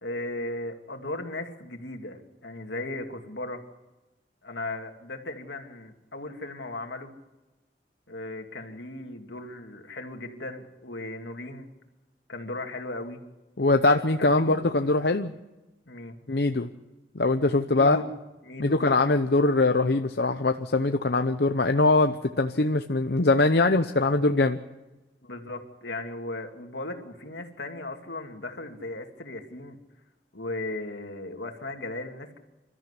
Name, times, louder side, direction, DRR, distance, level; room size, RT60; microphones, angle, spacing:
voice 1, 0.0-3.6 4.4-7.1 8.1-11.7 12.3-13.2 14.2-14.6 15.9-16.2 17.7-18.1 18.4-19.0 25.2-29.8 30.3-32.4, left 2 dB, 80° left, 4 dB, 2.5 m, -37 dB
voice 2, 13.6-15.3 16.3-16.7 17.1-18.0 18.6-24.6, left 2 dB, 65° left, 7 dB, 0.8 m, -22 dB
28.0 x 14.0 x 8.2 m, 1.1 s
head